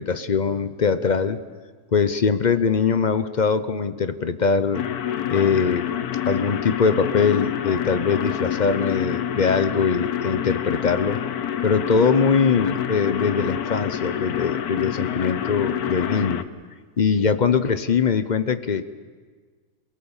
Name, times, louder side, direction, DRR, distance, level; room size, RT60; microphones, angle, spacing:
voice 1, 0.0-1.4 1.9-4.8 5.3-5.9 6.3-11.2 11.6-16.5 17.0-18.8, left 5 dB, 45° left, 12 dB, 0.6 m, -22 dB
sound 1, 4.7-16.4, left 10 dB, 70° left, 1.3 m, -27 dB
27.0 x 18.5 x 7.2 m, 1.5 s
omnidirectional pair, 1.7 m